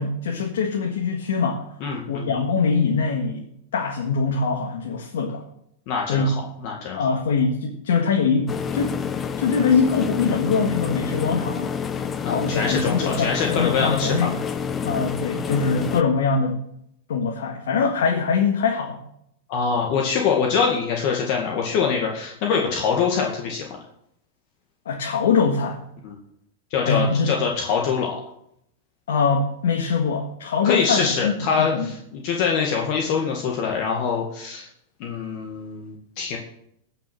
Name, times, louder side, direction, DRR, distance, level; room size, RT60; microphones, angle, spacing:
voice 1, 0.0-1.6 2.1-5.4 6.1-6.3 6.9-8.9 9.4-11.7 12.3-14.4 14.8-16.6 17.1-19.0 24.9-25.8 26.9-27.3 29.1-31.9, left 5 dB, 85° left, 1 dB, 1.8 m, -23 dB
voice 2, 1.8-2.3 5.9-7.0 12.2-14.3 19.5-23.7 26.0-26.1 26.7-28.2 30.6-34.7 35.0-36.4, left 6 dB, 50° left, 0 dB, 2.0 m, -24 dB
sound 1, 8.5-16.0, left 6 dB, 20° left, 0.7 m, -28 dB
16.5 x 6.0 x 6.1 m, 0.74 s
supercardioid pair, 145°, 0 cm